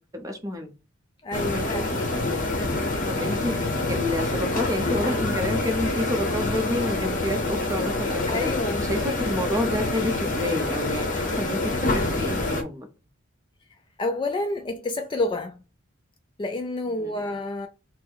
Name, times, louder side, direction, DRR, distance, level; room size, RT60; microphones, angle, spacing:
voice 1, 0.1-0.7 1.3-2.0 3.1-3.6 3.9-8.5 8.9-12.9 16.9-17.1, left 1 dB, 15° right, 0.7 m, -29 dB
voice 2, 1.2-2.0 2.7-3.0 8.3-8.9 14.0-15.6 16.4-17.7, left 2 dB, 25° left, 0.3 m, -29 dB
sound 1, 1.3-12.6, left 2 dB, 40° left, 0.8 m, -26 dB
4.0 x 2.0 x 4.4 m
head